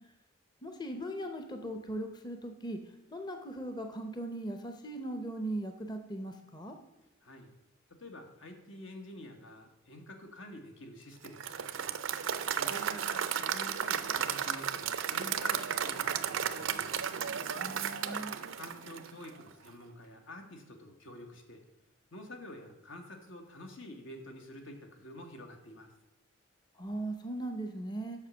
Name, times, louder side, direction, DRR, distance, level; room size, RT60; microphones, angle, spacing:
voice 1, 0.6-2.8 3.1-6.8 17.6-18.4 26.8-28.3, right 1 dB, 20° left, 6 dB, 0.6 m, -39 dB
voice 2, 7.9-11.9 12.6-17.0 18.5-21.6 22.1-25.9, left 1 dB, 80° left, 4 dB, 1.3 m, -48 dB
Applause / Crowd, 11.2-19.4, right 8 dB, 85° right, 0.5 m, -34 dB
7.3 x 5.8 x 6.2 m, 1.0 s
head